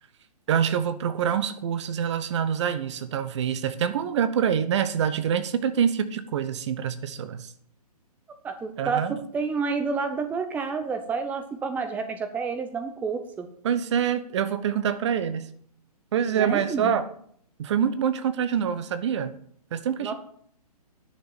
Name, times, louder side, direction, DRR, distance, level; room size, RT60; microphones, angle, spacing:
voice 1, 0.5-7.5 8.8-9.2 13.6-15.5 16.1-17.1 17.6-19.3 19.7-20.1, right 8 dB, 45° right, 12 dB, 1.1 m, -26 dB
voice 2, 8.4-13.5 16.3-17.0 20.0-20.1, right 5 dB, 10° right, 7 dB, 0.7 m, -29 dB
10.5 x 6.7 x 7.2 m, 0.62 s
figure-of-eight pair, 130°, 20 cm